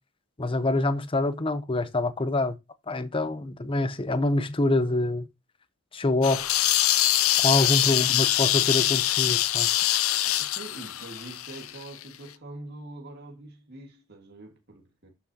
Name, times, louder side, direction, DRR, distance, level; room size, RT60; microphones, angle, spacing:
voice 1, 0.4-2.6 2.9-5.3 5.9-6.6 7.4-9.7, left 2 dB, 25° left, 0.7 m, -26 dB
sound 1, 6.2-12.0, left 13 dB, 85° left, 0.6 m, -24 dB
voice 2, 7.9-8.3 10.2-15.1, right 2 dB, 50° right, 1.9 m, -44 dB
11.5 x 5.9 x 2.9 m
head